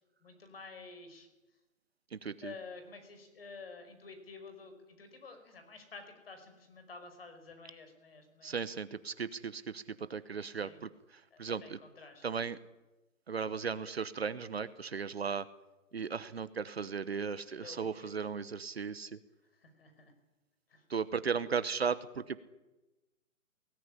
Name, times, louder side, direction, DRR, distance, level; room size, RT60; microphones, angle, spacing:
voice 1, 0.2-1.3 2.4-8.6 10.5-10.8 11.3-12.3 17.5-18.1 19.5-20.1 20.7-20.8, left 4 dB, 45° left, 7 dB, 5.5 m, -50 dB
voice 2, 2.1-2.5 8.4-11.8 12.2-12.6 13.3-15.5 15.9-19.2 20.9-22.4, right 6 dB, 45° right, 14 dB, 1.0 m, -36 dB
22.0 x 18.0 x 9.9 m, 1.1 s
hypercardioid pair, 175°, 41 cm